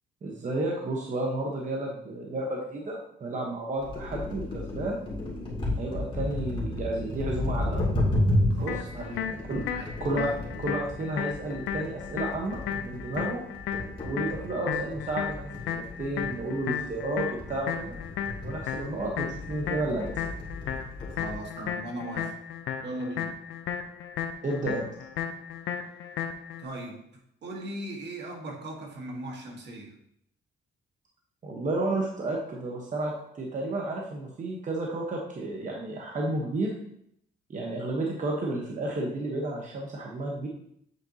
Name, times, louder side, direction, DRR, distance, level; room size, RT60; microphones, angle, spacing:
voice 1, 0.2-5.1 5.8-7.8 8.6-9.1 9.5-9.6 10.0-10.3 10.6-13.4 14.0-18.0 18.4-20.2 21.6-21.7 24.4-24.9 31.4-36.7 37.5-40.5, right 2 dB, 40° right, -1 dB, 1.0 m, -32 dB
sound 1, 3.8-21.4, left 1 dB, 25° left, 2.2 m, -33 dB
voice 2, 8.5-9.9 21.1-22.4 22.8-23.3 26.6-30.0, right 1 dB, 60° right, 1 dB, 1.5 m, -39 dB
sound 2, 8.7-26.6, left 8 dB, 85° left, 0.6 m, -35 dB
8.1 x 4.3 x 2.8 m, 0.72 s
cardioid pair, 90°, 20 cm